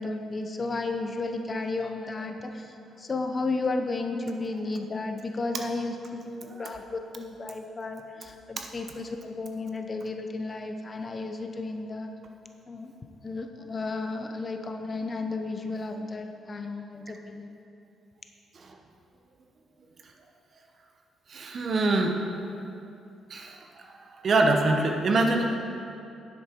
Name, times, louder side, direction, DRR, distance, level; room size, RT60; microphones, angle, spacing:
voice 1, 0.0-2.7 3.0-12.1 12.7-12.9 13.2-17.5, left 3 dB, 35° left, 5 dB, 0.8 m, -33 dB
voice 2, 21.3-22.2 23.3-25.5, right 2 dB, 50° right, 3 dB, 1.0 m, -25 dB
10.0 x 7.5 x 4.5 m, 2.7 s
cardioid pair, 90°, 0 cm